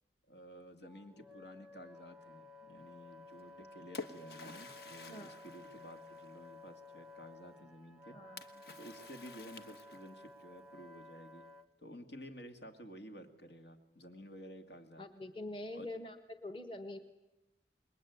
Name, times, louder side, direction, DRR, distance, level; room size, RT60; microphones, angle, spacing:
voice 1, 0.3-8.2 8.8-15.0 15.7-15.9, equal, 80° left, 6 dB, 2.4 m, -52 dB
Wind instrument woodwind instrument, 0.8-11.7, left 2 dB, ahead, 0.9 m, -55 dB
Splash splatter, 3.4-6.6 8.4-10.3, left 3 dB, 60° left, 1.3 m, -50 dB
voice 2, 5.1-5.4 8.1-8.6 15.0-17.0, left 1 dB, 30° left, 9 dB, 1.3 m, -45 dB
27.0 x 21.5 x 9.5 m, 1.0 s
head